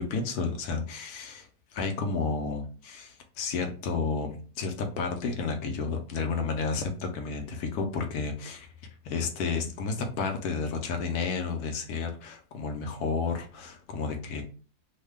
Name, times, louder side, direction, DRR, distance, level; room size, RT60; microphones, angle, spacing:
voice 1, 0.0-8.7 9.0-14.4, left 4 dB, 70° left, 4 dB, 1.0 m, -31 dB
3.1 x 2.2 x 3.4 m, 0.38 s
omnidirectional pair, 2.0 m